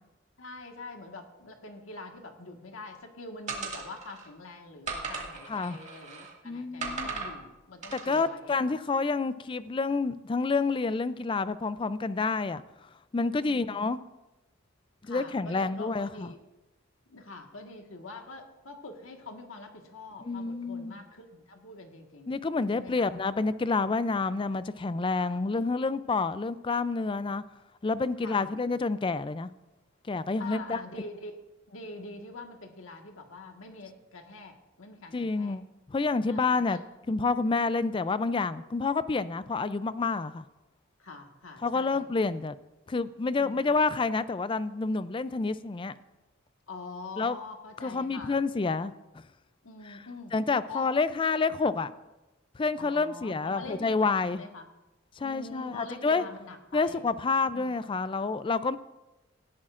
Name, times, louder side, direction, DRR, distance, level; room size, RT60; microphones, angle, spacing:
voice 1, 0.4-8.8 13.4-13.9 15.0-16.4 17.1-22.4 22.7-23.1 25.2-25.3 28.2-28.5 30.4-31.4 31.7-35.6 36.3-36.8 41.0-42.1 43.4-43.7 46.7-48.4 49.6-50.3 50.7-50.9 52.8-54.7 55.2-57.0 57.4-57.7, left 3 dB, 90° left, 3 dB, 1.6 m, -45 dB
sound 1, 3.5-4.3 4.9-6.3 6.8-7.4 7.8-8.2, right 4 dB, 35° right, 2.1 m, -37 dB
voice 2, 5.5-5.8 6.4-7.1 7.9-12.6 13.1-14.0 15.0-16.3 20.2-21.0 22.3-27.4 27.8-29.5 30.1-30.8 35.1-35.6 35.9-36.8 37.1-40.4 41.6-42.6 42.9-45.9 47.2-47.4 47.8-48.9 49.8-50.0 50.3-51.9 52.5-54.4 55.2-56.3 56.7-58.8, left 4 dB, 25° left, 14 dB, 0.4 m, -28 dB
18.0 x 13.0 x 2.5 m, 1.0 s
head